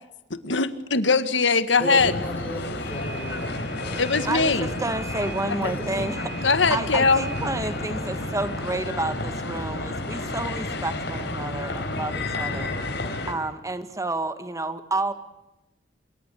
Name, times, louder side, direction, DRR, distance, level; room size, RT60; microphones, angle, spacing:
voice 1, 0.3-2.2 4.0-4.7 5.5-5.7 6.4-7.2, left 4 dB, 90° left, 11 dB, 1.9 m, -21 dB
voice 2, 1.8-4.6 5.6-6.0, equal, 10° left, -2 dB, 7.6 m, -35 dB
sound 1, 2.0-13.3, left 2 dB, 65° left, 4.6 m, -31 dB
voice 3, 4.3-15.1, right 2 dB, 20° right, 10 dB, 1.9 m, -30 dB
25.5 x 23.0 x 8.4 m, 0.96 s
head